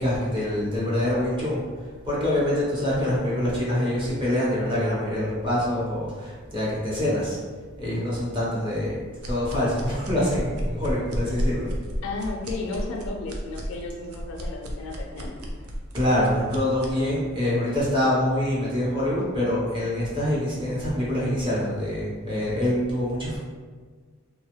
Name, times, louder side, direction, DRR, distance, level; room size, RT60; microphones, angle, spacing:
voice 1, 0.0-1.6 2.0-7.4 7.8-8.9 9.3-11.7 15.9-23.4, left 1 dB, 20° right, -7 dB, 0.8 m, -25 dB
sound 1, 9.2-17.0, equal, 80° right, 0.4 m, -32 dB
voice 2, 12.0-15.3, left 3 dB, 65° left, 1 dB, 0.4 m, -33 dB
2.5 x 2.3 x 3.0 m, 1.5 s
head